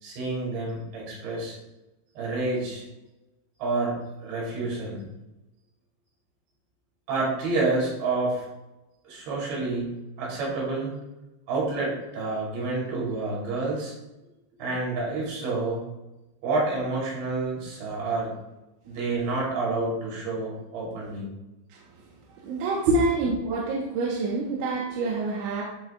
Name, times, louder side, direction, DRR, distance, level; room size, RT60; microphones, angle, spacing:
voice 1, 0.0-1.6 2.2-2.8 3.6-5.0 7.1-8.5 9.1-9.9 10.2-10.9 11.5-13.9 14.6-15.8 16.4-18.3 18.9-21.3 22.9-23.0, right 3 dB, 70° right, -5 dB, 5.6 m, -28 dB
voice 2, 22.4-25.6, right 4 dB, 90° right, -4 dB, 3.6 m, -28 dB
14.5 x 6.5 x 2.4 m, 1.0 s
omnidirectional pair, 5.3 m